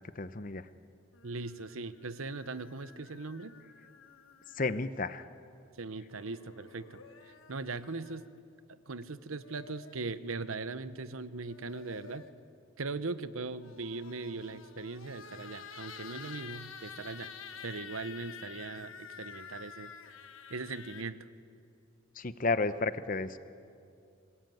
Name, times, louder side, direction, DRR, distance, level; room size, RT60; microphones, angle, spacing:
voice 1, 0.1-0.7 4.5-5.3 22.1-23.4, left 3 dB, 40° left, 13 dB, 0.8 m, -32 dB
sound 1, 1.1-4.9 6.1-8.4 9.2-10.2 11.3-12.5 13.5-21.0, left 6 dB, 75° left, 1.3 m, -50 dB
voice 2, 1.2-3.5 5.7-8.2 8.7-12.2 12.8-17.3 17.6-19.9 20.5-21.3, right 3 dB, 90° right, 14 dB, 0.9 m, -40 dB
26.0 x 20.0 x 9.2 m, 2.5 s
head